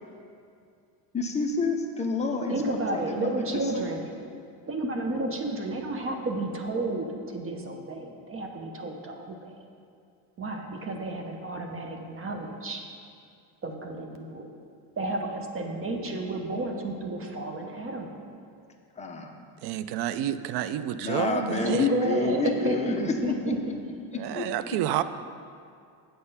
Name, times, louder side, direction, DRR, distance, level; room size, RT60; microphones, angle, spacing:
voice 1, 1.1-3.9 18.9-19.3 20.9-23.6 24.3-24.5, left 4 dB, 15° left, 1 dB, 0.8 m, -29 dB
voice 2, 2.5-4.1 4.6-9.5 10.4-12.9 13.6-14.5 15.0-18.1 21.6-23.6, right 2 dB, 30° right, 3 dB, 0.9 m, -31 dB
voice 3, 19.6-21.8 24.2-25.0, right 12 dB, 65° right, 13 dB, 0.5 m, -29 dB
7.7 x 6.8 x 5.5 m, 2.4 s
cardioid pair, 140°, 43 cm